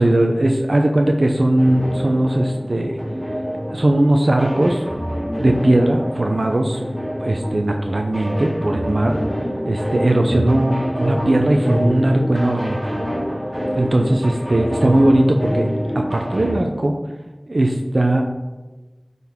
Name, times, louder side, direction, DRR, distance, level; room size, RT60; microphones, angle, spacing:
voice 1, 0.0-3.0 3.7-4.8 5.4-6.8 7.2-9.2 9.6-12.8 13.7-15.7 15.9-17.0 17.5-18.2, right 1 dB, 80° right, 3 dB, 0.6 m, -18 dB
sound 1, 1.6-16.6, equal, 20° right, 2.5 m, -26 dB
11.5 x 4.1 x 3.6 m, 1.1 s
wide cardioid pair, 45°, 0 cm